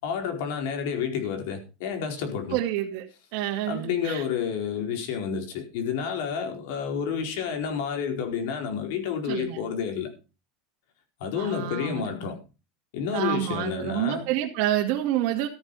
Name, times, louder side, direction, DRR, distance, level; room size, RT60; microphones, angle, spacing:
voice 1, 0.0-2.6 3.7-10.1 11.2-12.4 12.9-14.3, left 7 dB, 60° left, 4.4 m, -30 dB
voice 2, 2.5-3.1 3.3-4.2 9.2-9.6 11.4-12.3 13.1-15.5, right 12 dB, 50° right, 2.4 m, -28 dB
14.5 x 9.1 x 5.6 m
supercardioid pair, 180°, 0 cm